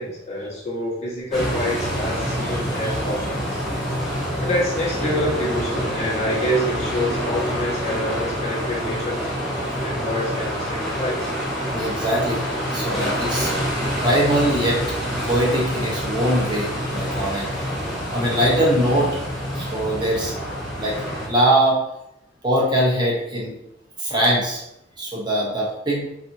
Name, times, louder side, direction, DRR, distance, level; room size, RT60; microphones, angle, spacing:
voice 1, 0.0-3.6 4.4-9.2 9.8-11.3, left 1 dB, 35° left, -6 dB, 1.3 m, -27 dB
sound 1, 1.3-21.3, equal, ahead, 1.2 m, -27 dB
voice 2, 11.7-12.4 12.7-13.5 14.0-14.8 15.3-17.6 18.1-19.2 19.5-20.3 20.8-21.0 21.3-21.8 22.4-23.6 24.0-24.6 25.0-26.1, right 1 dB, 25° right, -5 dB, 0.8 m, -21 dB
4.0 x 2.7 x 2.7 m, 0.83 s
head